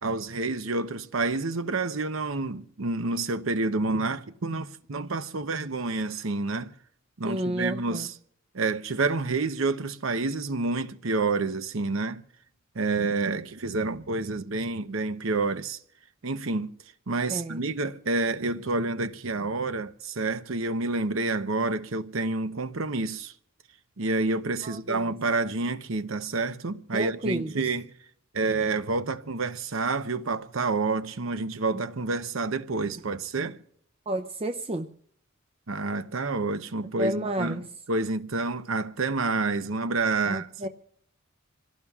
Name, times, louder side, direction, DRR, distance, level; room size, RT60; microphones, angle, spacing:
voice 1, 0.0-6.7 7.2-8.1 8.5-12.2 12.7-15.8 16.2-16.7 17.1-23.3 24.0-27.9 28.3-33.6 35.7-40.5, right 3 dB, 70° right, 0.9 m, -28 dB
voice 2, 7.2-8.1 17.3-17.6 24.6-25.1 26.9-27.5 34.1-34.9 37.0-37.7 40.2-40.7, right 1 dB, 30° right, 0.6 m, -31 dB
27.5 x 17.5 x 2.4 m
head